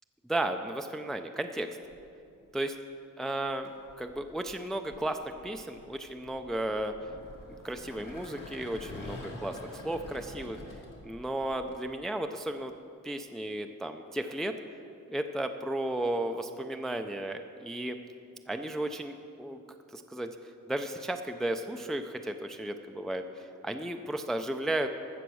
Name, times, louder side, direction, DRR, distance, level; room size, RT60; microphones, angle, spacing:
voice 1, 0.3-1.7 2.5-2.7 3.2-3.7 4.0-7.0 7.6-10.6 11.0-12.7 13.0-14.6 15.1-18.0 18.5-19.6 19.9-20.3 20.7-24.9, right 1 dB, ahead, 6 dB, 0.4 m, -34 dB
sound 1, 1.9-2.4 3.5-11.8, left 2 dB, 75° left, 2.0 m, -47 dB
14.5 x 7.1 x 6.3 m, 2.5 s
wide cardioid pair, 135°, 33 cm